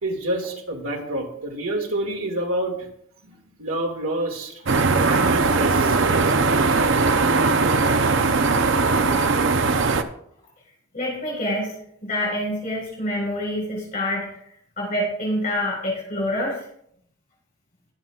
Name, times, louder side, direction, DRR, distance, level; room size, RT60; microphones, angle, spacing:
voice 1, 0.0-2.8 3.2-6.0 7.4-7.5, right 1 dB, 75° right, 1 dB, 2.2 m, -28 dB
sound 1, 4.7-10.0, right 3 dB, 60° right, 0.6 m, -19 dB
voice 2, 10.9-14.3 14.8-16.6, left 1 dB, 40° left, -4 dB, 4.3 m, -27 dB
20.5 x 7.4 x 2.4 m, 0.69 s
head